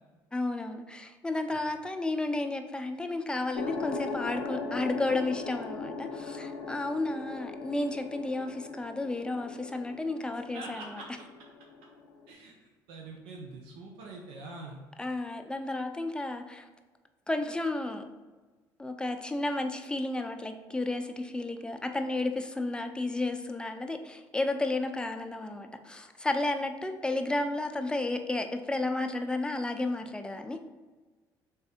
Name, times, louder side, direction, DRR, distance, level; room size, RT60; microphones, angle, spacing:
voice 1, 0.3-10.9 15.0-16.7 17.3-18.0 18.8-30.6, left 2 dB, 10° left, 6 dB, 0.5 m, -32 dB
sound 1, 3.5-12.3, left 4 dB, 85° left, 0.6 m, -39 dB
voice 2, 10.5-11.1 12.3-14.8, right 3 dB, 85° right, 0 dB, 0.6 m, -44 dB
3.4 x 3.3 x 4.3 m, 1.3 s
supercardioid pair, 75°, 9 cm